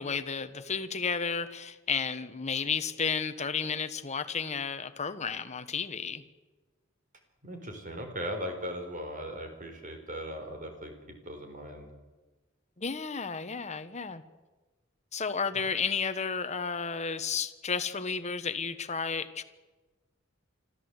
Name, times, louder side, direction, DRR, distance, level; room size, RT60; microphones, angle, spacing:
voice 1, 0.0-6.2 12.8-14.2 15.1-19.4, left 5 dB, 35° left, 11 dB, 1.1 m, -32 dB
voice 2, 7.4-11.9, equal, 40° right, 5 dB, 4.0 m, -38 dB
25.0 x 14.0 x 8.0 m, 1.2 s
head